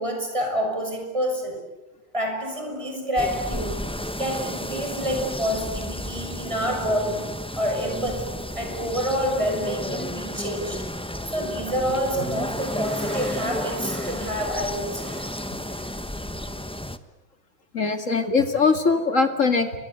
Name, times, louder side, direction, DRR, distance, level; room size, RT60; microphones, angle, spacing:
voice 1, 0.0-1.7 2.1-3.8 4.2-7.3 7.6-10.9 11.2-15.4 15.7-15.9, equal, 15° right, 3 dB, 6.7 m, -28 dB
sound 1, 3.2-17.0, left 1 dB, 5° left, 0.5 m, -32 dB
voice 2, 17.7-19.8, left 4 dB, 40° left, 7 dB, 2.5 m, -21 dB
30.0 x 24.5 x 8.0 m, 1.0 s
omnidirectional pair, 2.2 m